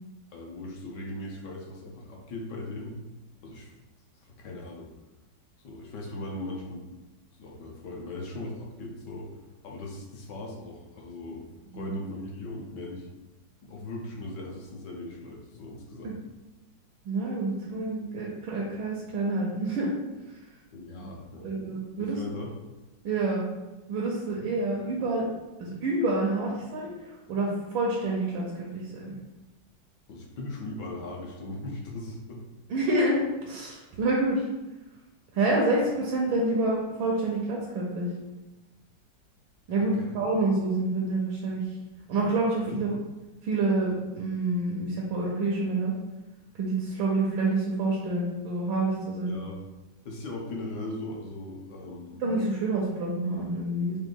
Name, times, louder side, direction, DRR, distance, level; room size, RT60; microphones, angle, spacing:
voice 1, 0.3-3.0 3.4-3.7 4.4-4.9 5.6-6.9 7.3-9.3 9.6-13.1 13.6-16.2 20.7-21.5 22.0-22.5 30.1-32.4 39.7-40.1 42.7-42.8 49.3-49.6 50.0-52.2, left 2 dB, 65° left, -1 dB, 1.3 m, -39 dB
voice 2, 17.0-19.9 21.0-21.1 21.4-22.2 23.0-23.4 23.9-25.3 25.6-26.9 27.3-28.4 28.7-29.1 32.7-34.4 35.3-38.1 39.7-41.6 42.1-42.9 43.4-45.9 46.6-49.4 52.2-54.0, right 2 dB, 90° right, -4 dB, 1.6 m, -27 dB
5.0 x 2.7 x 3.7 m, 1.1 s
omnidirectional pair, 2.1 m